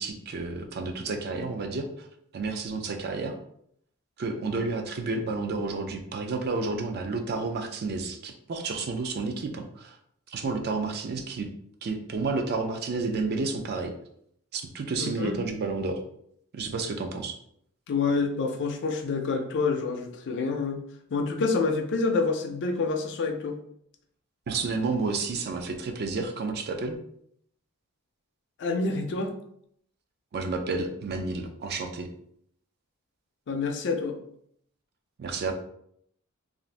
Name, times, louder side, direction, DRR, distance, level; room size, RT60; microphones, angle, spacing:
voice 1, 0.0-2.1 2.3-3.4 4.2-10.0 10.3-11.5 11.8-13.9 14.5-16.0 16.5-17.4 24.5-27.0 30.3-32.1 35.2-35.5, right 3 dB, 45° right, 5 dB, 0.4 m, -31 dB
voice 2, 15.0-15.4 17.9-20.8 21.1-23.6 28.6-29.3 33.5-34.2, left 4 dB, 55° left, 4 dB, 0.4 m, -27 dB
2.5 x 2.4 x 3.2 m, 0.70 s
head